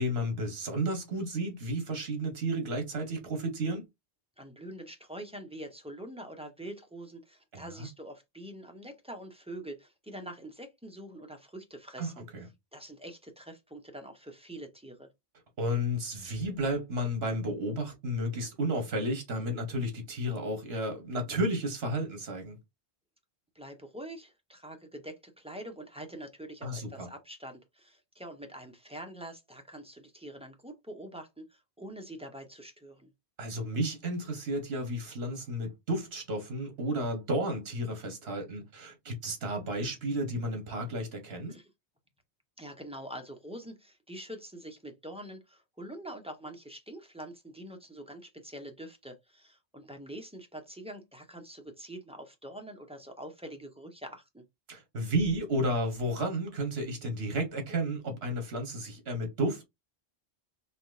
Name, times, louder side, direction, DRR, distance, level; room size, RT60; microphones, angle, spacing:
voice 1, 0.0-3.8 7.5-7.9 12.0-12.4 15.6-22.6 26.6-27.1 33.4-41.6 54.7-59.7, right 1 dB, 65° right, 1.4 m, -32 dB
voice 2, 4.4-12.1 12.7-15.1 23.5-33.1 41.5-41.7 42.6-54.4, right 1 dB, 10° right, 0.4 m, -45 dB
4.1 x 2.8 x 2.4 m
omnidirectional pair, 1.1 m